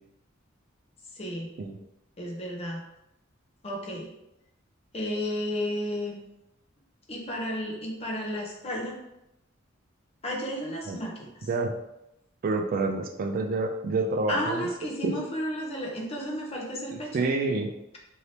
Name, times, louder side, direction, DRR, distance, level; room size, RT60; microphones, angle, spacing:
voice 1, 1.1-1.5 2.2-2.8 3.6-4.1 4.9-6.2 7.1-9.0 10.2-11.5 14.3-17.3, equal, 30° left, -1 dB, 0.7 m, -32 dB
voice 2, 12.4-14.6 15.0-15.2 17.1-17.7, right 3 dB, 45° right, 4 dB, 0.3 m, -28 dB
2.8 x 2.7 x 3.2 m, 0.85 s
head